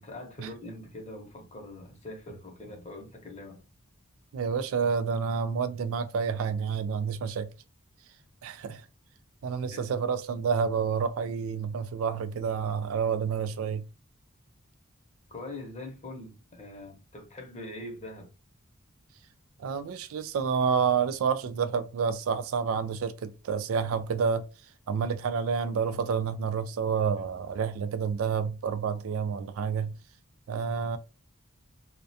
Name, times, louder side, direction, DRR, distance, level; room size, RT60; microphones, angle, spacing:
voice 1, 0.0-3.6 9.7-9.9 15.3-18.3, left 1 dB, 30° left, 0.7 m, -43 dB
voice 2, 4.3-7.5 8.4-8.8 9.4-13.8 19.6-24.4 24.9-29.9 30.5-31.0, right 6 dB, 70° right, 0.3 m, -29 dB
2.3 x 2.2 x 2.6 m
head